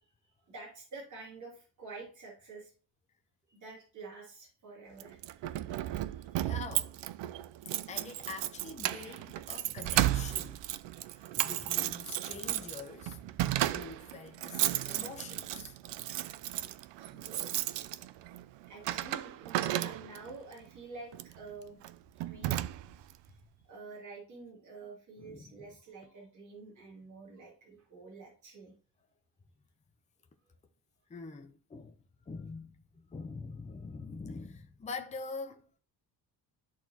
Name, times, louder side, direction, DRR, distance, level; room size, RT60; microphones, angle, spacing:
voice 1, 0.5-2.7 3.5-6.5 16.6-17.9 18.7-21.8 22.3-22.6 23.3-23.4 23.7-28.7, right 3 dB, 45° right, 2.8 m, -49 dB
Keys jangling, 5.0-20.3 21.1-21.4 21.8-21.9 22.2-23.1, right 14 dB, 85° right, 0.5 m, -34 dB
voice 2, 6.4-7.0 7.7-10.7 11.0-13.2 13.7-15.7 25.2-25.7 31.1-32.0 32.3-35.7, left 4 dB, 15° left, 0.7 m, -45 dB
12.5 x 4.3 x 2.9 m
cardioid pair, 155°, 42 cm